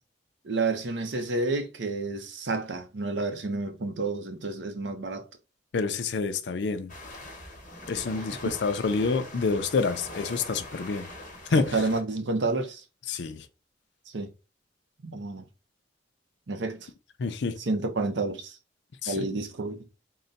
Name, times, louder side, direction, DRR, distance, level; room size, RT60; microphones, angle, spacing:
voice 1, 0.4-5.3 11.5-12.8 14.1-14.3 15.0-15.5 16.5-16.9 17.6-18.6 19.1-19.9, right 3 dB, 75° right, 0.7 m, -30 dB
voice 2, 5.7-6.9 7.9-11.0 11.5-11.7 13.1-13.5 17.2-17.6 19.0-19.2, left 4 dB, 70° left, 0.5 m, -27 dB
sound 1, 6.9-12.0, left 1 dB, 40° left, 1.0 m, -42 dB
3.8 x 2.2 x 3.9 m
head